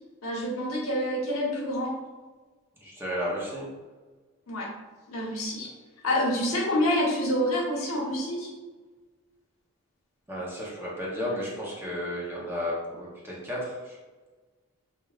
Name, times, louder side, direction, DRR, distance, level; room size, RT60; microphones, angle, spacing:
voice 1, 0.2-1.9 4.5-4.7 5.1-5.7 6.0-8.5, left 1 dB, 75° left, -4 dB, 1.1 m, -27 dB
voice 2, 2.8-3.7 10.3-14.0, equal, 10° right, -5 dB, 0.9 m, -33 dB
4.8 x 2.6 x 2.4 m, 1.3 s
head